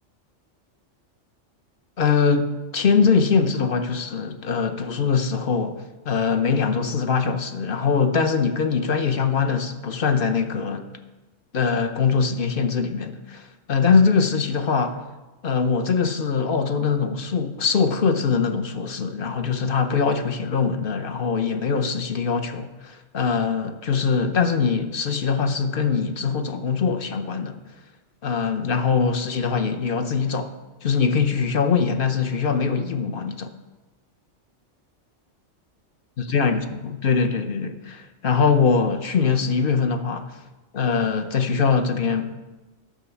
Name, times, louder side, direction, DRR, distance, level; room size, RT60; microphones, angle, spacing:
voice 1, 2.0-10.9 11.5-15.0 15.4-27.6 28.2-30.5 30.8-33.5 36.3-40.3 40.7-42.3, left 5 dB, 50° left, 7 dB, 0.9 m, -22 dB
10.5 x 6.2 x 7.0 m, 1.1 s
omnidirectional pair, 1.2 m